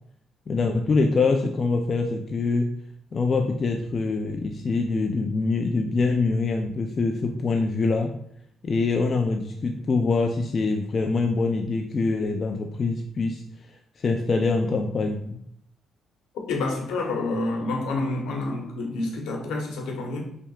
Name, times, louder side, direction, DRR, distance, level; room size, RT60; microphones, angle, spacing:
voice 1, 0.5-2.7 3.1-8.1 8.6-15.4, left 3 dB, 45° left, 3 dB, 0.4 m, -24 dB
voice 2, 16.5-20.2, left 2 dB, 80° left, 1 dB, 1.0 m, -28 dB
5.4 x 3.4 x 2.3 m, 0.71 s
supercardioid pair, 70°, 0 cm